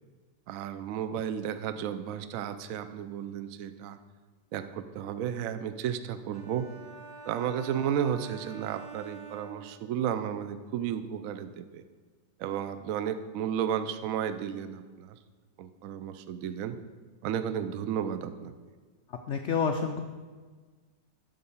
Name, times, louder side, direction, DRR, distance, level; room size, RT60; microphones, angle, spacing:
voice 1, 0.5-4.0 4.5-6.7 7.3-11.8 12.4-15.2 15.6-16.8 17.2-18.5, right 9 dB, 70° right, 11 dB, 0.8 m, -33 dB
sound 1, 6.3-10.2, right 3 dB, 45° right, 1.1 m, -46 dB
voice 2, 19.1-20.0, left 6 dB, 80° left, 5 dB, 0.6 m, -29 dB
11.0 x 4.0 x 7.1 m, 1.4 s
omnidirectional pair, 1.9 m